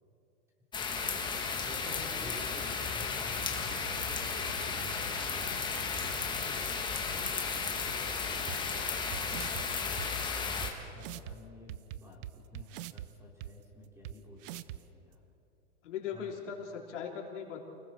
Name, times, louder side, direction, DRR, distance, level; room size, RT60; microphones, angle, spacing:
sound 1, 0.7-10.7, left 5 dB, 10° left, 1.8 m, -34 dB
voice 1, 1.6-6.6 6.9-9.0 10.5-15.2 16.1-16.3, left 1 dB, 5° right, -2 dB, 3.8 m, -51 dB
sound 2, 8.5-8.6 9.1-9.6 10.0-10.1 10.6-10.7 11.0-11.3 11.7-13.1 13.4-13.5 14.0-14.1 14.4-14.8, right 13 dB, 45° right, 0.7 m, -41 dB
voice 2, 15.8-17.6, left 7 dB, 70° left, 0 dB, 3.6 m, -39 dB
29.5 x 20.0 x 4.5 m, 2.8 s
hypercardioid pair, 145°, 37 cm